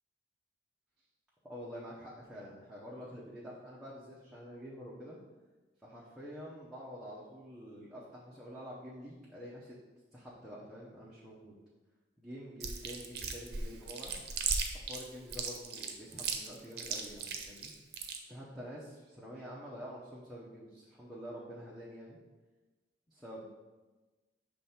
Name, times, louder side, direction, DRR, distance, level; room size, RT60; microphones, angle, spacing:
voice 1, 1.4-5.2 5.8-9.8 10.1-11.6 12.2-14.2 14.7-17.7 18.3-22.2 23.1-23.5, equal, ahead, -8 dB, 0.8 m, -47 dB
Chewing mastication, 12.6-18.2, right 5 dB, 60° right, 0.7 m, -36 dB
5.9 x 3.3 x 5.6 m, 1.2 s
head